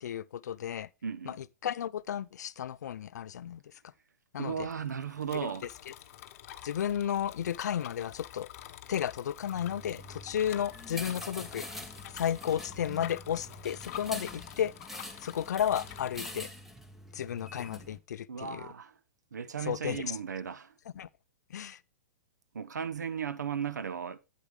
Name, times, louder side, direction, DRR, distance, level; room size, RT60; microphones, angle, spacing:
voice 1, 0.0-0.9 1.3-3.7 4.3-4.7 5.3-5.5 6.6-8.5 8.9-11.7 12.1-14.7 15.2-16.5 17.1-18.7 19.6-20.2 21.0-21.1 21.5-21.8, left 9 dB, 75° left, 0.4 m, -33 dB
voice 2, 1.0-1.4 4.4-5.7 18.3-18.9 19.3-20.7 22.5-24.2, right 7 dB, 90° right, 0.8 m, -36 dB
Bicycle, 4.6-16.3, left 12 dB, 55° left, 0.8 m, -48 dB
sound 1, 9.5-18.0, left 1 dB, 5° right, 1.1 m, -45 dB
8.3 x 8.1 x 3.2 m
hypercardioid pair, 125°, 9 cm